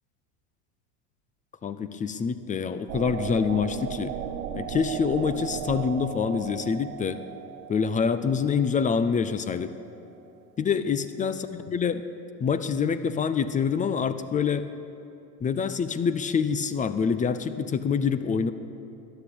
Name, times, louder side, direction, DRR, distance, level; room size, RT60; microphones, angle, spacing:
voice 1, 1.6-4.1 4.5-7.2 7.7-9.7 10.6-12.0 12.4-14.7 15.4-18.5, left 6 dB, 15° left, 12 dB, 0.5 m, -26 dB
sound 1, 2.9-9.5, right 9 dB, 75° right, 1.3 m, -36 dB
13.0 x 10.0 x 8.5 m, 2.7 s
hypercardioid pair, 100°, 46 cm